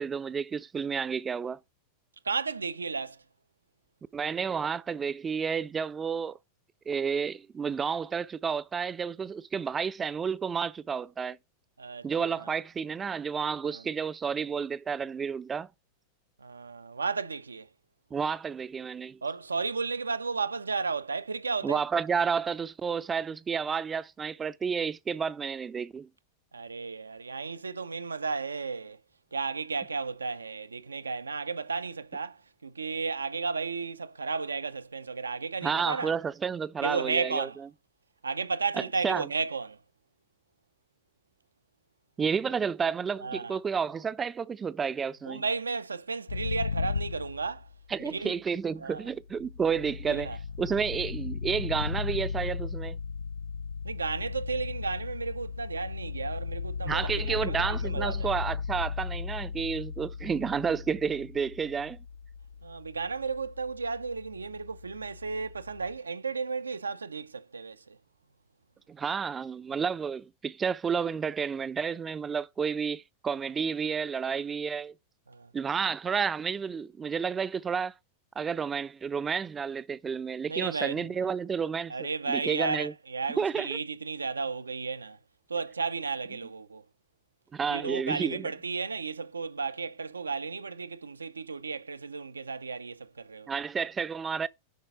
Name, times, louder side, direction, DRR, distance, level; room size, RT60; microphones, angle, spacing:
voice 1, 0.0-1.6 4.1-6.4 6.9-11.4 12.0-15.7 18.1-19.2 21.6-26.1 35.6-37.5 39.0-39.3 42.2-45.4 47.9-50.3 50.6-53.0 56.8-62.0 68.9-74.9 75.5-77.9 78.4-82.9 83.4-83.8 87.5-88.5 93.5-94.5, right 6 dB, 20° right, 0.5 m, -31 dB
voice 2, 2.2-3.2 11.8-12.5 13.6-13.8 16.4-17.7 19.2-21.8 26.5-29.0 29.3-36.1 36.8-37.6 38.2-39.8 43.2-43.6 45.3-47.7 48.0-48.4 48.8-49.1 50.1-50.4 53.8-58.3 62.6-68.0 75.3-75.5 80.5-81.1 81.9-85.2 85.5-86.8 87.7-93.5, right 4 dB, 75° right, 0.6 m, -33 dB
sound 1, 46.3-48.0 49.1-66.0, left 5 dB, 70° left, 0.5 m, -36 dB
10.5 x 4.7 x 5.0 m
figure-of-eight pair, 90°, 0 cm